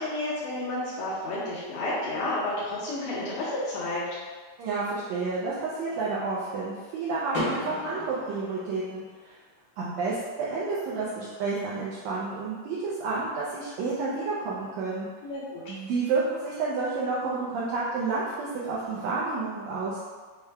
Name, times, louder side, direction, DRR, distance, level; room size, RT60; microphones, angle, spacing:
voice 1, 0.0-4.0 15.2-15.7, left 2 dB, 75° left, -9 dB, 2.4 m, -31 dB
voice 2, 4.6-9.4 9.8-15.1 15.7-20.0, right 4 dB, 90° right, -7 dB, 1.5 m, -30 dB
Car / Door, 7.3-9.2, left 1 dB, 90° left, 0.7 m, -35 dB
6.2 x 2.2 x 3.3 m, 1.5 s
omnidirectional pair, 3.7 m